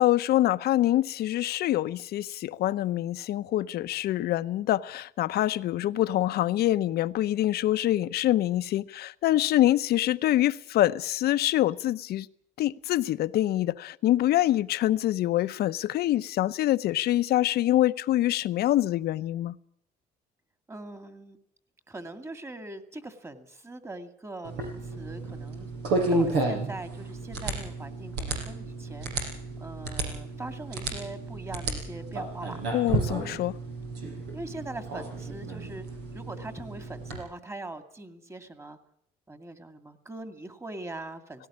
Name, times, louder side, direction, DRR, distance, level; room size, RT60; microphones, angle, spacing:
voice 1, 0.0-12.3 12.6-19.6 32.7-33.5, left 14 dB, 70° left, 0.9 m, -25 dB
voice 2, 20.7-21.4 21.9-25.7 26.1-29.1 29.6-32.6 34.0-35.9 36.1-38.8 39.3-41.5, right 2 dB, 15° right, 2.3 m, -41 dB
sound 1, 24.4-37.2, right 2 dB, 90° right, 6.5 m, -32 dB
18.0 x 18.0 x 8.6 m
cardioid pair, 110°, 17 cm